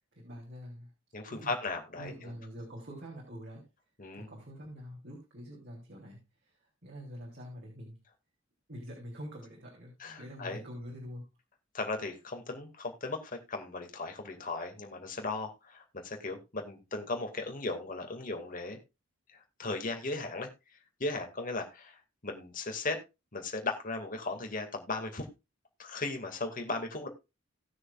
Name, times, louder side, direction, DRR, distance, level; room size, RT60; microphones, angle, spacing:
voice 1, 0.1-0.9 1.3-1.5 2.0-3.6 4.1-8.0 8.7-11.2, equal, 60° right, -1 dB, 3.5 m, -45 dB
voice 2, 1.1-2.1 4.0-4.3 10.0-10.6 11.7-18.8 19.3-20.5 21.0-23.0 23.3-25.3 25.8-27.1, left 3 dB, 45° left, 4 dB, 2.2 m, -37 dB
18.5 x 6.4 x 2.4 m, 0.25 s
head